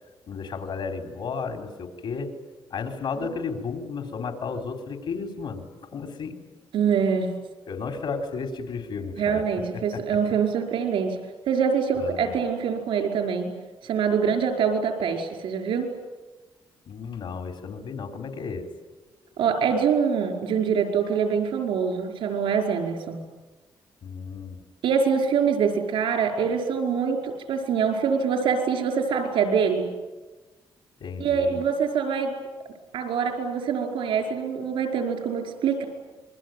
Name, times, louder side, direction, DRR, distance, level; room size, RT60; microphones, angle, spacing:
voice 1, 0.3-2.3 2.7-5.7 5.9-6.3 7.7-9.4 9.7-10.0 12.0-12.3 16.9-18.7 24.0-24.6 31.0-31.6, left 5 dB, 75° left, 5 dB, 4.0 m, -33 dB
voice 2, 6.7-7.3 9.2-11.2 11.5-13.5 13.8-15.9 19.4-23.2 24.8-29.9 31.2-32.4 32.9-35.8, right 6 dB, 85° right, 4 dB, 5.0 m, -24 dB
27.0 x 22.0 x 9.3 m, 1.2 s
cardioid pair, 65°, 9 cm